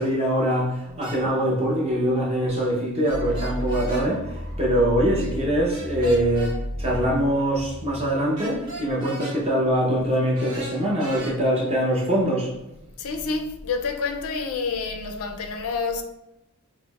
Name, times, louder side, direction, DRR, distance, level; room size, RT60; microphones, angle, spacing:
voice 1, 0.0-4.2 4.6-12.5, right 1 dB, 25° right, 0.7 m, -23 dB
sound 1, 1.0-1.2 3.0-4.1 5.7-6.5 8.4-9.4 10.3-11.3, right 1 dB, 75° right, 1.0 m, -38 dB
sound 2, 3.1-9.0, equal, 50° right, 1.0 m, -33 dB
voice 2, 13.0-16.0, left 4 dB, 65° left, 0.4 m, -28 dB
5.8 x 2.0 x 2.3 m
head